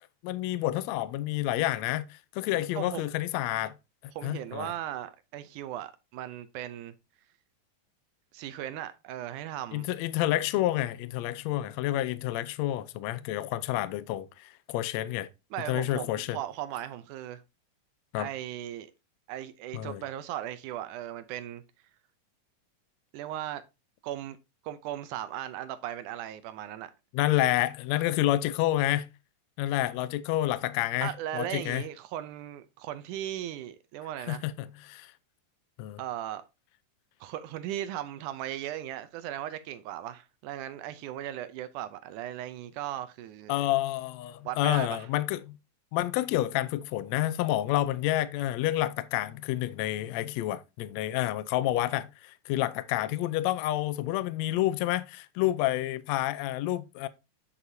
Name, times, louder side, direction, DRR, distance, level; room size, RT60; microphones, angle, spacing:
voice 1, 0.2-3.7 4.0-4.7 9.7-15.3 15.7-16.4 18.1-18.3 19.7-20.0 27.1-29.1 29.6-31.8 34.3-35.1 35.8-36.0 43.5-45.5 45.9-57.1, left 14 dB, 85° left, 1.5 m, -29 dB
voice 2, 2.8-3.1 4.2-6.9 8.3-9.9 15.5-17.4 18.2-18.9 19.3-21.6 23.1-23.6 24.0-24.4 24.6-26.9 31.0-34.4 36.0-36.4 37.2-43.7 44.5-45.1, right 12 dB, 80° right, 2.0 m, -37 dB
9.0 x 6.9 x 2.7 m
omnidirectional pair, 3.8 m